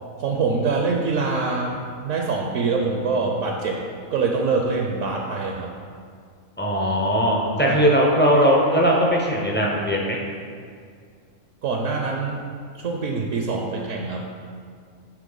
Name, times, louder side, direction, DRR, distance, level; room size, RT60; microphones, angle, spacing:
voice 1, 0.2-3.8 4.1-5.7 7.7-7.8 11.6-12.4 12.7-14.3, right 4 dB, 70° right, 1 dB, 0.9 m, -24 dB
voice 2, 6.6-10.2, equal, 20° left, -3 dB, 0.3 m, -19 dB
9.3 x 3.2 x 3.9 m, 2.1 s
omnidirectional pair, 1.4 m